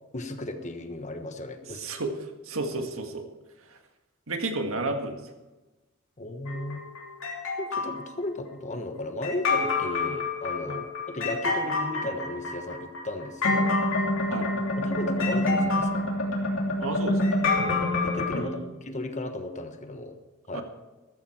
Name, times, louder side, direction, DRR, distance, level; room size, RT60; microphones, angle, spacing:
voice 1, 0.1-1.8 6.2-6.8 7.6-13.8 14.7-16.1 17.6-20.2 20.5-20.6, left 2 dB, 35° left, 7 dB, 1.2 m, -35 dB
voice 2, 1.7-3.3 3.7-3.8 4.3-5.2 10.7-10.8 14.3-14.5 16.8-17.2 18.3-18.7 20.5-20.6, right 2 dB, 75° right, 5 dB, 1.8 m, -32 dB
sound 1, 6.5-8.0 9.2-18.4, left 2 dB, 65° left, 3.0 m, -27 dB
14.0 x 13.5 x 4.5 m, 1.1 s
head